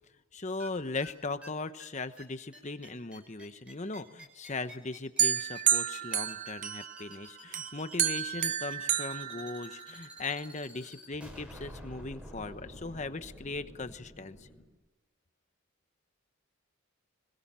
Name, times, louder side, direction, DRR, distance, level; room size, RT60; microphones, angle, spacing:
voice 1, 0.3-14.4, left 3 dB, 35° left, 11 dB, 1.0 m, -38 dB
sound 1, 0.6-0.7 1.0-1.1 1.4-1.5 1.8-1.9 2.2-2.3 2.5-14.6, equal, 5° right, 5.3 m, -49 dB
sound 2, 5.2-7.1 7.5-10.1, right 9 dB, 35° right, 0.8 m, -30 dB
25.5 x 22.0 x 7.5 m, 1.1 s
head